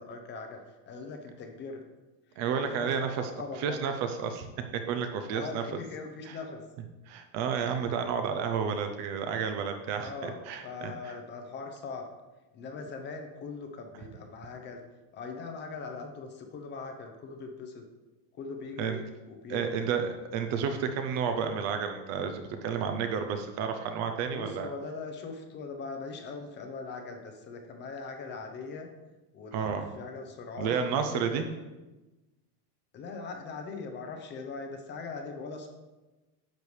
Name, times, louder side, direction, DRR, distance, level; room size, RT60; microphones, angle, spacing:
voice 1, 0.0-1.8 2.3-3.8 5.3-6.6 10.0-12.1 12.5-14.8 15.1-17.8 18.3-19.8 24.3-28.9 29.3-31.5 32.9-35.7, left 4 dB, 25° left, 4 dB, 0.6 m, -41 dB
voice 2, 2.4-3.3 3.6-4.5 4.7-5.6 6.3-6.4 7.1-11.1 18.8-19.0 19.5-24.7 29.5-29.9 30.6-31.5, right 6 dB, 35° right, 7 dB, 0.5 m, -31 dB
10.5 x 6.8 x 3.2 m, 1.1 s
supercardioid pair, 165°, 47 cm